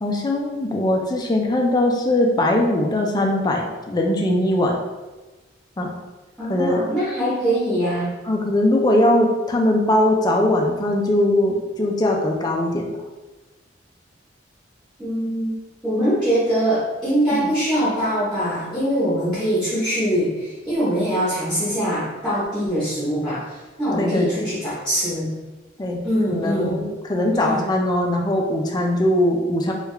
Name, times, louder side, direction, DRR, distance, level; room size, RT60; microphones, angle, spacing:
voice 1, 0.0-4.8 5.8-5.9 6.5-6.8 8.3-12.9 17.4-17.5 23.9-24.4 25.8-26.0 26.3-29.7, left 1 dB, 20° left, 1 dB, 0.4 m, -20 dB
voice 2, 6.4-8.1 15.0-15.5 15.8-25.3 26.0-26.8 27.3-27.6, equal, 5° left, -10 dB, 0.9 m, -23 dB
3.4 x 2.3 x 3.3 m, 1.2 s
head